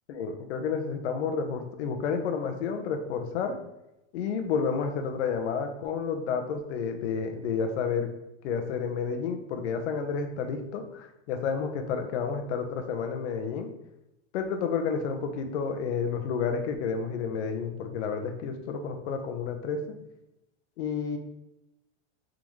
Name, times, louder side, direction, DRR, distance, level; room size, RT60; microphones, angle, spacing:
voice 1, 0.1-3.6 4.1-8.1 8.4-13.7 14.3-20.0 20.8-21.2, left 6 dB, 70° left, 6 dB, 0.8 m, -30 dB
3.9 x 3.6 x 3.1 m, 0.92 s
supercardioid pair, 155°, 35 cm